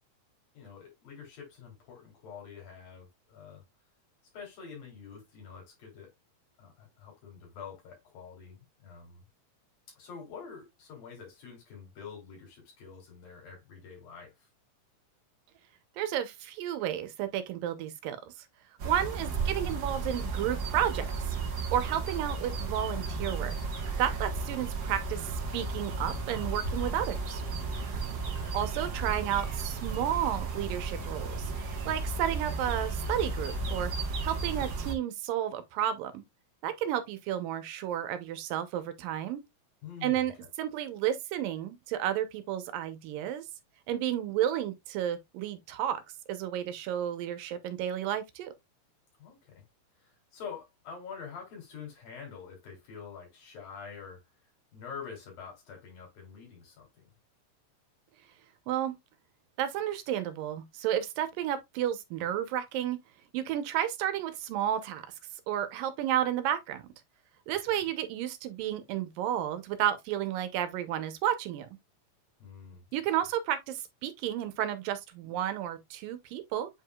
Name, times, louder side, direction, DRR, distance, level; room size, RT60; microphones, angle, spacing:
voice 1, 0.5-3.6 4.3-6.1 6.6-9.2 9.9-14.3 19.3-19.5 28.2-28.6 39.8-40.3 49.2-49.6 50.0-54.2 54.7-57.1 67.7-67.8 72.4-72.8, left 6 dB, 90° left, 5.1 m, -46 dB
voice 2, 16.0-18.3 18.8-21.4 21.7-23.5 24.0-27.4 28.5-31.5 31.9-33.9 34.2-36.2 36.6-39.4 40.0-40.3 40.6-43.5 43.9-46.0 46.3-48.5 58.7-59.0 59.6-63.0 63.3-65.0 65.5-66.9 67.5-71.7 72.9-76.7, right 11 dB, 80° right, 2.6 m, -32 dB
sound 1, 18.8-34.9, right 4 dB, 60° right, 1.0 m, -34 dB
8.4 x 4.8 x 2.3 m
omnidirectional pair, 3.9 m